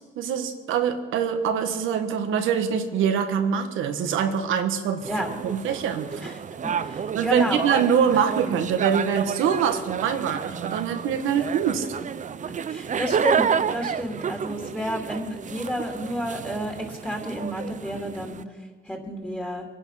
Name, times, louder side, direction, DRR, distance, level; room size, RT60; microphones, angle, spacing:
voice 1, 0.0-5.1 5.4-6.2 7.1-11.9, right 7 dB, 90° right, 6 dB, 1.5 m, -24 dB
sound 1, 5.0-18.4, right 7 dB, 40° right, 0.6 m, -30 dB
voice 2, 6.6-7.7 12.4-18.4 18.9-19.7, equal, 5° left, 1 dB, 2.7 m, -31 dB
24.0 x 10.0 x 5.7 m, 1.5 s
cardioid pair, 90°, 20 cm